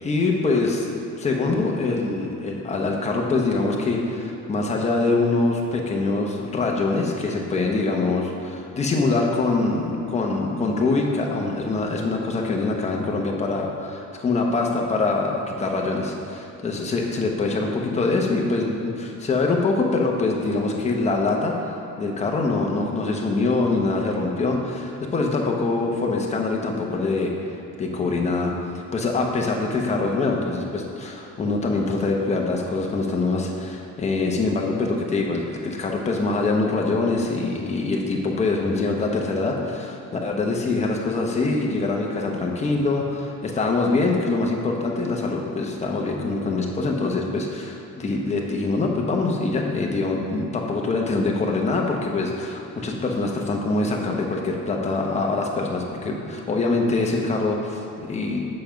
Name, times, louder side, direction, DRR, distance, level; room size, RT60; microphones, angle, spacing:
voice 1, 0.0-0.9 1.2-27.3 27.8-28.5 28.9-58.5, left 3 dB, 25° left, 0 dB, 0.9 m, -24 dB
7.0 x 5.2 x 5.8 m, 2.9 s
cardioid pair, 160°, 29 cm